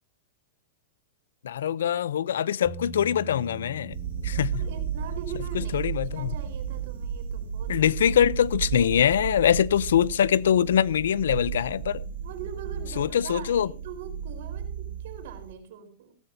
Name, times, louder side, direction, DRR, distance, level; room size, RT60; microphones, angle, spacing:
voice 1, 1.4-4.0 4.2-4.6 5.5-6.3 7.7-12.0 13.0-13.7, left 9 dB, 90° left, 0.5 m, -23 dB
sound 1, 2.7-10.7, right 4 dB, 5° left, 1.3 m, -46 dB
sound 2, 3.9-15.5, right 8 dB, 80° right, 1.7 m, -34 dB
voice 2, 4.3-7.9 12.2-16.1, right 8 dB, 65° right, 4.2 m, -42 dB
15.5 x 14.0 x 2.7 m
supercardioid pair, 150°, 0 cm